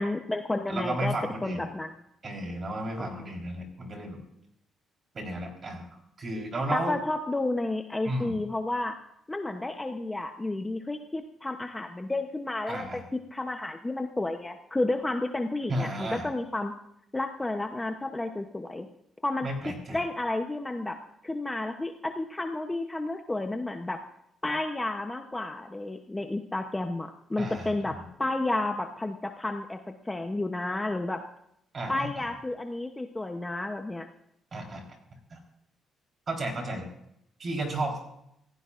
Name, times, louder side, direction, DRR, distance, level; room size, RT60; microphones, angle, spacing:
voice 1, 0.0-1.1 1.4-1.9 3.0-3.3 6.7-9.0 9.3-16.7 17.1-18.9 19.2-19.5 19.9-21.0 21.2-24.0 24.4-29.8 30.1-31.2 31.9-34.1, left 2 dB, 10° left, 5 dB, 0.7 m, -31 dB
voice 2, 0.7-1.7 2.2-4.2 5.1-5.9 6.2-6.9 8.0-8.4 12.7-13.0 15.7-16.3 19.4-20.0 27.4-28.1 31.7-32.2 34.5-34.8 35.3-35.4 36.3-36.8 37.4-38.0, right 1 dB, 30° right, 1 dB, 3.8 m, -33 dB
26.5 x 15.5 x 2.5 m, 0.78 s
cardioid pair, 160°, 0 cm